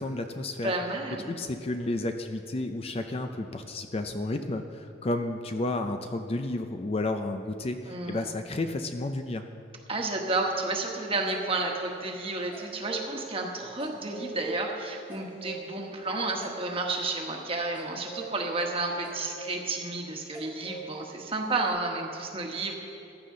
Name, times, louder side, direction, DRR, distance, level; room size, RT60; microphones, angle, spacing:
voice 1, 0.0-0.7 1.3-9.4, left 2 dB, 30° left, 6 dB, 0.5 m, -32 dB
voice 2, 0.6-1.3 7.9-8.3 9.9-22.8, right 2 dB, 30° right, 1 dB, 1.3 m, -31 dB
sound 1, 10.9-13.1 13.4-13.5 13.8-21.7, right 4 dB, 10° left, 1.7 m, -45 dB
15.0 x 11.0 x 3.8 m, 2.6 s
head